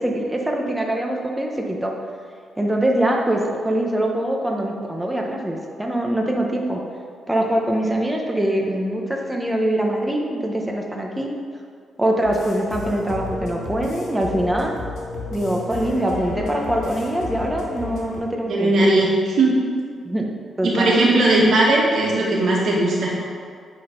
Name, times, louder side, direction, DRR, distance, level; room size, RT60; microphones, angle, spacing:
voice 1, 0.0-1.9 2.6-6.8 7.3-11.4 12.0-14.7 15.3-18.9 20.0-20.3 20.6-21.0, right 1 dB, 10° right, 0 dB, 0.9 m, -23 dB
sound 1, 12.2-18.2, left 3 dB, 90° left, 1.8 m, -31 dB
voice 2, 18.3-19.6 20.6-23.2, right 2 dB, 65° right, -4 dB, 2.0 m, -18 dB
9.1 x 3.9 x 5.3 m, 2.1 s
cardioid pair, 135°, 0 cm